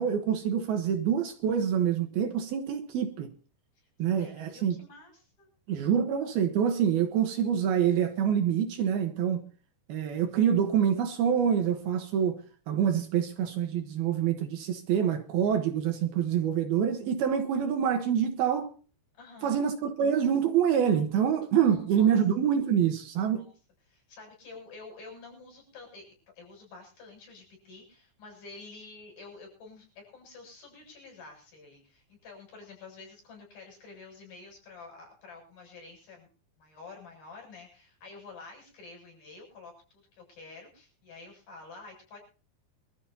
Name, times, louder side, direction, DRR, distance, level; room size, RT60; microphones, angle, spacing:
voice 1, 0.0-3.3 4.0-4.8 5.7-9.5 9.9-12.4 12.7-18.7 19.4-23.4, right 8 dB, 70° right, 2.9 m, -26 dB
voice 2, 4.2-5.9 19.1-19.6 21.6-22.2 23.3-23.4 23.9-26.1 26.4-36.3 36.6-42.2, left 3 dB, 55° left, 9.3 m, -49 dB
26.0 x 13.5 x 2.8 m
omnidirectional pair, 4.9 m